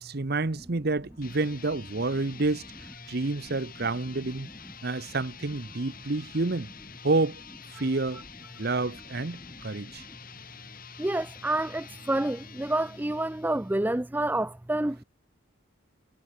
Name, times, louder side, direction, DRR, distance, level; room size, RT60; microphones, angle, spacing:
voice 1, 0.0-2.6 3.1-4.5 4.8-6.7 7.0-7.4 7.7-8.2 8.6-10.0, right 3 dB, 45° right, 0.9 m, -29 dB
sound 1, 1.1-13.9, left 7 dB, 40° left, 2.2 m, -48 dB
voice 2, 11.0-15.0, right 1 dB, 10° right, 0.4 m, -28 dB
head